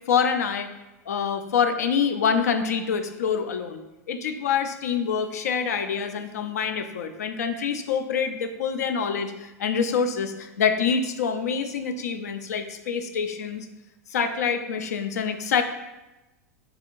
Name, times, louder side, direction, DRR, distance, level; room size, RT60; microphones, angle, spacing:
voice 1, 0.1-0.7 1.1-13.7 14.1-15.6, left 6 dB, 80° left, 8 dB, 0.4 m, -26 dB
4.3 x 3.6 x 2.5 m, 1.0 s
hypercardioid pair, 100°, 9 cm